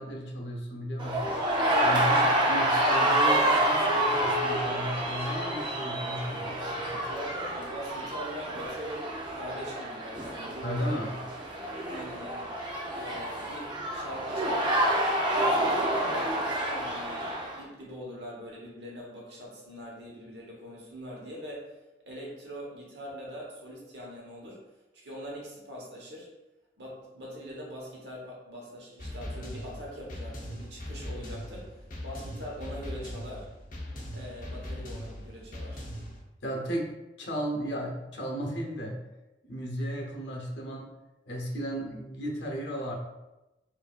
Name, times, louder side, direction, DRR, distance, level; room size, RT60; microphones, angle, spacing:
voice 1, 0.0-7.0 10.6-11.1 36.4-36.9 37.2-39.0 39.4-40.9 41.3-42.9, equal, 90° left, 0 dB, 0.9 m, -34 dB
sound 1, 1.0-17.6, right 1 dB, 25° right, 0.6 m, -28 dB
voice 2, 1.9-2.3 7.0-11.1 11.9-12.5 12.9-21.7 22.1-26.3 26.8-33.5 34.1-35.9, equal, 70° right, -3 dB, 1.2 m, -42 dB
sound 2, 29.0-36.2, left 1 dB, 50° left, 0.7 m, -40 dB
4.6 x 2.6 x 2.4 m, 0.99 s
head